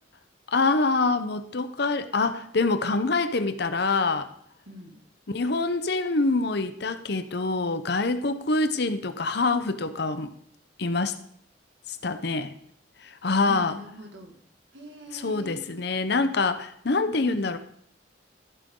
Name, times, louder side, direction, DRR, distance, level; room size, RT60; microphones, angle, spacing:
voice 1, 0.5-4.3 5.3-10.3 10.8-11.2 11.9-12.5 13.0-13.8 15.1-17.6, left 3 dB, 60° left, 10 dB, 0.9 m, -25 dB
voice 2, 4.7-5.0 13.4-14.3 14.7-15.6 17.0-17.6, right 1 dB, 75° right, 2 dB, 2.2 m, -41 dB
14.0 x 8.0 x 3.8 m, 0.67 s
head